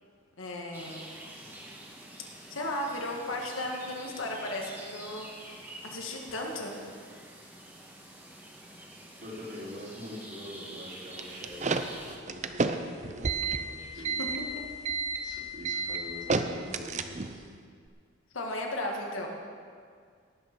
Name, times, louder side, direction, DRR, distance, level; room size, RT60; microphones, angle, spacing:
voice 1, 0.4-1.1 2.5-6.7 13.9-14.0 18.3-19.3, left 1 dB, 80° left, 0 dB, 1.9 m, -35 dB
sound 1, 0.7-12.2, right 1 dB, 10° right, 1.6 m, -47 dB
voice 2, 9.2-11.8 12.2-14.3 15.2-17.4, left 1 dB, 55° right, -7 dB, 4.2 m, -44 dB
sound 2, 11.2-17.4, right 4 dB, 35° right, 0.6 m, -31 dB
18.5 x 6.8 x 6.1 m, 2.1 s
head